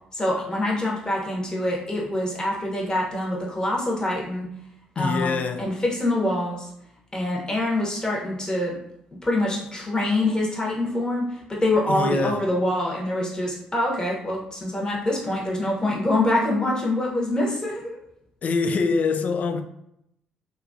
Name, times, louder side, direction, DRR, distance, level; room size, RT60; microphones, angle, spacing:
voice 1, 0.1-4.5 4.9-6.6 7.1-8.8 9.2-18.0, left 1 dB, 20° left, 1.1 m, -25 dB
voice 2, 5.0-5.7 11.9-12.5 18.4-19.6, left 4 dB, 45° left, 0.3 m, -24 dB
2.7 x 2.4 x 2.6 m
hypercardioid pair, 50°, 3 cm